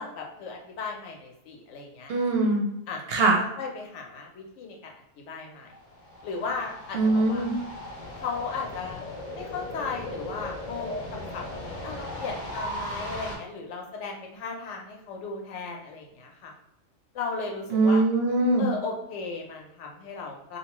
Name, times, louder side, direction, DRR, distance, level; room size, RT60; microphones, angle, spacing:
voice 1, 0.0-2.1 2.9-3.3 3.6-4.9 5.3-5.7 6.2-7.4 8.2-9.0 9.3-16.5 17.1-18.0 18.6-20.6, left 4 dB, 75° left, 1 dB, 0.9 m, -36 dB
voice 2, 2.1-2.7 3.1-3.4 6.9-7.5 17.7-18.7, right 2 dB, 65° right, 0 dB, 0.7 m, -22 dB
sound 1, 5.7-13.4, left 1 dB, 50° left, 0.6 m, -37 dB
2.7 x 2.1 x 2.9 m, 0.80 s
omnidirectional pair, 1.3 m